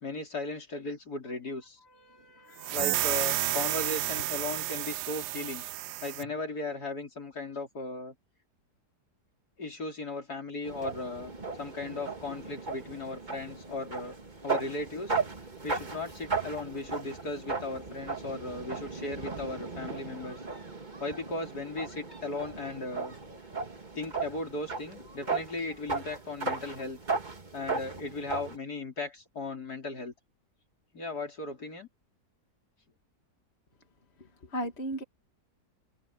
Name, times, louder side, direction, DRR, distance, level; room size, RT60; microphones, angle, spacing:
voice 1, 0.0-1.8 2.7-5.6 6.0-8.1 9.6-11.3 11.6-14.2 14.4-15.2 15.6-20.4 21.0-23.1 23.9-27.0 27.5-30.1 30.9-31.9, left 2 dB, 60° left, 4.5 m, -37 dB
voice 2, 1.9-2.9 25.2-25.3 34.4-35.0, right 1 dB, 35° left, 2.5 m, -38 dB
sound 1, 2.6-6.3, right 15 dB, 75° right, 1.1 m, -31 dB
sound 2, 10.6-28.6, right 4 dB, 25° right, 1.9 m, -36 dB
open air
omnidirectional pair, 1.9 m